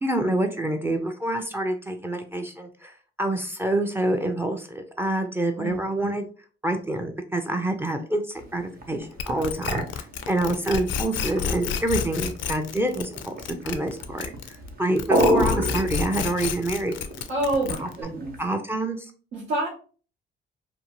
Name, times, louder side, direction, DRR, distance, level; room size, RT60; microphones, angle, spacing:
voice 1, 0.0-2.9 3.2-6.2 6.6-13.3 13.6-17.0 17.8-17.9 18.4-19.1, right 1 dB, 10° right, 6 dB, 0.4 m, -27 dB
sound 1, 8.4-18.5, right 1 dB, 50° right, 0.7 m, -31 dB
sound 2, 9.2-14.7 15.0-18.0, left 7 dB, 75° left, 0.4 m, -30 dB
voice 2, 17.3-18.4 19.3-19.7, right 1 dB, 85° right, -5 dB, 0.8 m, -27 dB
2.6 x 2.1 x 2.9 m, 0.39 s
cardioid pair, 90°, 20 cm